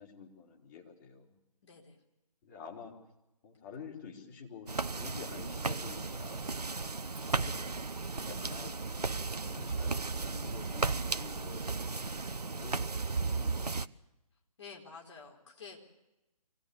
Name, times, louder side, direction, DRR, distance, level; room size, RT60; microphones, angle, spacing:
voice 1, 0.0-1.4 2.4-2.9 3.4-6.5 7.2-13.7, left 5 dB, 30° left, -2 dB, 3.9 m, -49 dB
voice 2, 1.6-2.0 6.7-7.1 14.6-15.8, left 5 dB, 50° left, 0 dB, 4.6 m, -50 dB
sound 1, 4.7-9.7, right 2 dB, 5° right, 1.2 m, -63 dB
sound 2, 4.7-13.9, right 4 dB, 80° right, 0.7 m, -35 dB
25.0 x 18.0 x 6.9 m, 0.96 s
figure-of-eight pair, 140°, 20 cm